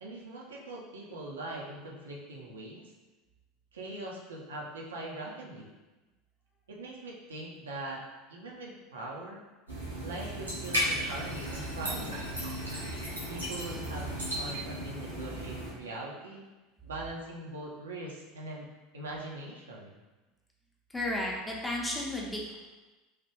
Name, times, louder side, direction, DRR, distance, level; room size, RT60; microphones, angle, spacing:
voice 1, 0.0-2.9 3.7-5.7 6.7-8.0 8.3-9.4 10.0-12.3 13.3-16.4 16.8-18.7 18.9-20.0, right 2 dB, 70° right, -3 dB, 0.5 m, -41 dB
sound 1, 9.7-15.7, equal, 85° right, 0.9 m, -35 dB
voice 2, 20.9-22.5, left 1 dB, 10° left, -2 dB, 0.6 m, -33 dB
3.2 x 2.2 x 3.0 m, 1.2 s
figure-of-eight pair, 75°, 0 cm